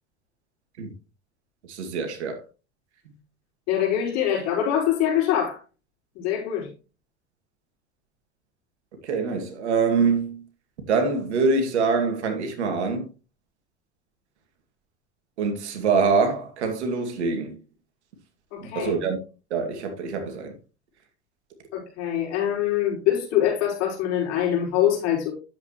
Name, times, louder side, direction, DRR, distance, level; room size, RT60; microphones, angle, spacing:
voice 1, 1.7-2.4 9.0-10.4 10.9-13.1 15.4-17.6 18.6-19.2 19.5-20.5, right 4 dB, 75° right, 2.3 m, -24 dB
voice 2, 3.7-5.6 6.1-6.7 18.5-19.0 21.7-25.3, left 10 dB, 50° left, 4.9 m, -24 dB
10.0 x 7.8 x 3.0 m
hypercardioid pair, 85°, 34 cm